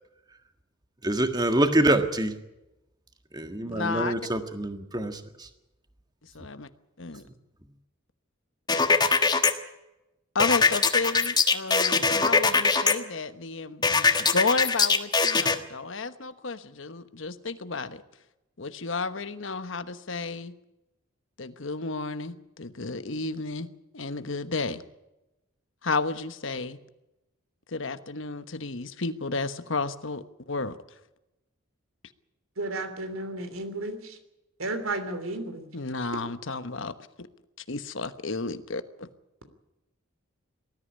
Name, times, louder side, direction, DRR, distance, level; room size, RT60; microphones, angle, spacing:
voice 1, 1.0-2.3 3.3-5.5, right 1 dB, 20° right, 7 dB, 1.6 m, -25 dB
voice 2, 3.7-4.2 6.3-6.7 7.0-7.2 10.3-18.0 18.6-20.5 21.4-23.7 23.9-24.8 25.8-26.8 27.7-30.8 35.7-37.3 37.7-39.1, left 3 dB, 65° left, 12 dB, 1.1 m, -32 dB
sound 1, 8.7-9.5 10.4-12.9 13.8-15.6, left 4 dB, 20° left, 1.4 m, -22 dB
voice 3, 32.6-34.2 34.6-35.7, right 2 dB, 80° right, 9 dB, 3.2 m, -33 dB
19.5 x 13.5 x 9.9 m, 0.94 s
head